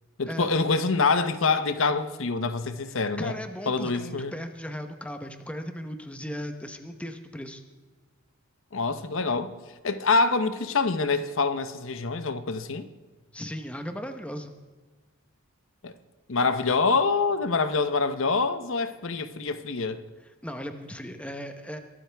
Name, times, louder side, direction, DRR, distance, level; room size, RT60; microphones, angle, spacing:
voice 1, 0.2-3.4 3.7-4.3 8.7-9.5 9.8-12.9 15.8-15.9 16.3-20.0, left 4 dB, 65° left, 0.8 m, -25 dB
voice 2, 2.9-7.6 13.3-14.5 20.4-21.8, equal, 5° left, 0.9 m, -37 dB
22.5 x 12.5 x 3.4 m
head